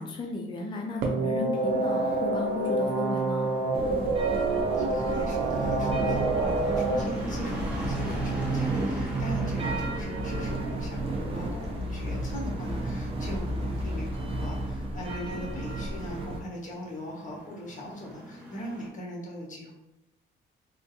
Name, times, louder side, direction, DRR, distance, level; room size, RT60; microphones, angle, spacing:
voice 1, 0.0-3.5 15.5-15.6, left 3 dB, 25° left, 1 dB, 0.5 m, -34 dB
sound 1, 1.0-7.0, right 3 dB, 80° right, 0.7 m, -27 dB
sound 2, 1.6-18.9, equal, 5° right, 1.5 m, -44 dB
sound 3, 3.7-16.4, right 2 dB, 30° right, 0.6 m, -32 dB
voice 2, 4.3-19.7, equal, 40° left, -3 dB, 1.3 m, -40 dB
3.5 x 2.5 x 2.7 m, 0.92 s
cardioid pair, 90°, 20 cm